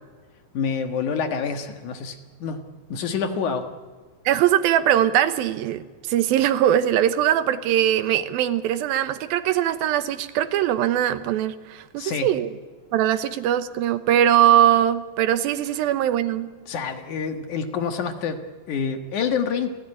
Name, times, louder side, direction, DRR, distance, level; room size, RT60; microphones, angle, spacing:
voice 1, 0.5-2.6 2.9-3.7 12.0-12.3 16.7-18.4 18.7-19.8, left 6 dB, 60° left, 7 dB, 2.8 m, -27 dB
voice 2, 4.3-12.5 12.9-16.5, right 11 dB, 85° right, 11 dB, 2.8 m, -21 dB
30.0 x 16.5 x 9.9 m, 1.4 s
omnidirectional pair, 4.2 m